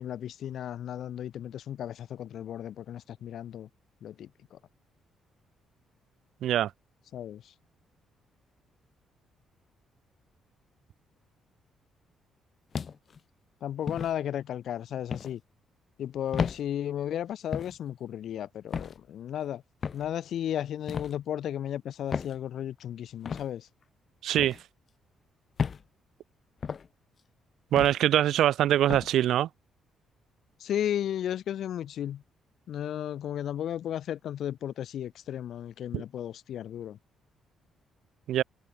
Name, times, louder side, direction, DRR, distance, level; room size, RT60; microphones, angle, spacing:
voice 1, 0.0-3.7 4.0-4.6 7.1-7.5 13.6-15.4 16.0-19.6 19.9-23.7 30.6-32.2 32.7-37.0, left 10 dB, 70° left, 0.9 m, -34 dB
sound 1, 12.7-13.2 13.9-14.1 15.1-15.3 16.3-16.6 17.5-17.8 18.7-19.0 19.8-20.1 20.9-21.1 22.1-22.4 23.2-23.5 24.4-24.6 25.6-25.8 26.6-26.9 27.8-28.0 28.9-29.1, left 6 dB, 45° left, 1.4 m, -33 dB
voice 2, 24.2-24.6 27.7-29.5 35.9-36.0 38.3-38.4, right 12 dB, 75° right, 0.3 m, -23 dB
cardioid pair, 90°, 0 cm